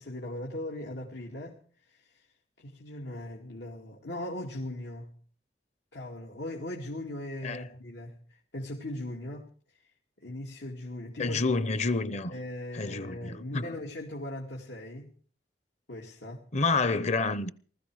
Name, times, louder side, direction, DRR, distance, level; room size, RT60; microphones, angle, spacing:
voice 1, 0.0-1.6 1.9-2.2 2.6-5.2 5.9-9.5 10.2-11.4 12.3-15.1 15.9-16.5, left 1 dB, 90° left, 2.3 m, -39 dB
voice 2, 11.2-12.3 12.7-13.8 16.5-17.5, left 3 dB, 40° left, 0.8 m, -28 dB
19.5 x 14.0 x 4.9 m
head